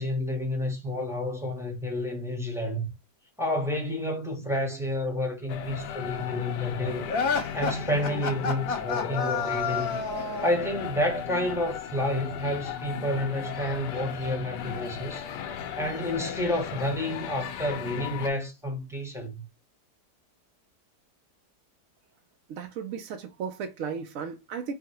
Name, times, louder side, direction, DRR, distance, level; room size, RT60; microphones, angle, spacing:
voice 1, 0.0-2.9 3.4-7.1 7.5-19.5, left 1 dB, ahead, 0.9 m, -30 dB
sound 1, 5.5-18.3, left 8 dB, 85° left, 1.3 m, -36 dB
sound 2, 7.1-10.6, left 4 dB, 55° left, 1.4 m, -29 dB
voice 2, 22.5-24.7, right 6 dB, 65° right, 0.8 m, -35 dB
4.6 x 2.1 x 4.5 m
omnidirectional pair, 1.8 m